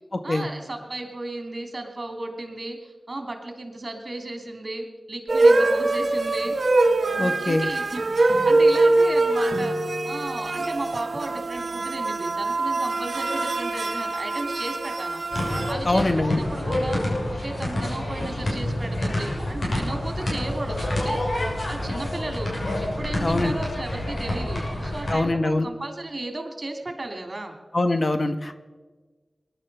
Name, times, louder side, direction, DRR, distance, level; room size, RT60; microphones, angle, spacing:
voice 1, 0.2-6.6 7.1-9.8 10.0-15.2 15.7-21.2 21.7-22.5 22.8-27.6, right 2 dB, 45° right, 4 dB, 3.1 m, -34 dB
sound 1, 5.3-15.7, right 2 dB, 75° right, 1.2 m, -23 dB
voice 2, 7.2-7.7 15.8-16.4 23.2-23.5 25.1-25.7 27.7-28.6, left 2 dB, 45° left, 8 dB, 1.1 m, -23 dB
sound 2, 15.3-25.2, left 1 dB, 70° left, 6.3 m, -28 dB
22.0 x 11.5 x 5.5 m, 1.3 s
wide cardioid pair, 70°, 0 cm